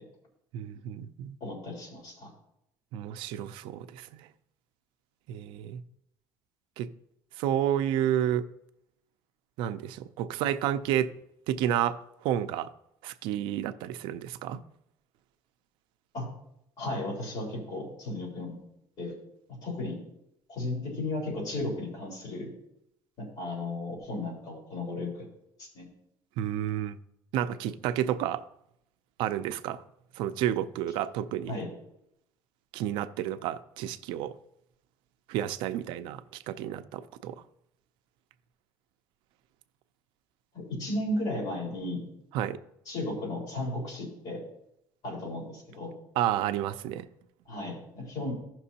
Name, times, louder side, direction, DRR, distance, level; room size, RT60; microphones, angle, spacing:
voice 1, 0.5-1.4 2.9-4.2 5.3-5.8 6.8-6.9 7.4-8.5 9.6-11.1 11.5-12.0 12.2-12.7 13.0-14.6 26.4-27.0 27.3-28.4 29.2-29.8 30.2-31.6 32.7-34.3 35.3-37.4 42.3-42.6 46.2-47.0, right 11 dB, 75° right, 0.5 m, -30 dB
voice 2, 1.4-2.3 16.1-16.3 16.8-18.6 19.0-19.1 19.6-20.0 20.5-22.5 23.2-25.3 25.6-25.9 31.5-31.7 40.5-42.0 42.9-44.4 45.0-45.9 47.5-48.3, left 2 dB, 50° left, 3.9 m, -34 dB
15.0 x 6.0 x 2.8 m
cardioid pair, 170°, 9 cm